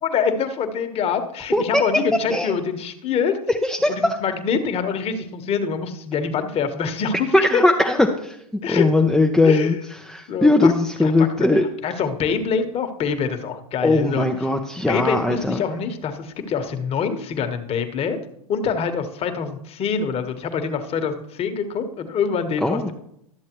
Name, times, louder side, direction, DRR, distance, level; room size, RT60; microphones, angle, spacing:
voice 1, 0.0-3.3 3.9-7.6 8.6-8.9 9.4-9.7 10.3-10.7 11.0-14.3 14.9-18.2 18.5-22.9, left 6 dB, 35° left, 8 dB, 1.2 m, -25 dB
voice 2, 1.5-1.8 2.3-2.5 3.6-4.2 7.3-8.4 8.7-9.7 10.0-11.6 13.8-15.6 22.6-22.8, left 2 dB, ahead, 2 dB, 0.6 m, -19 dB
12.5 x 7.3 x 3.0 m, 0.75 s
hypercardioid pair, 105°, 19 cm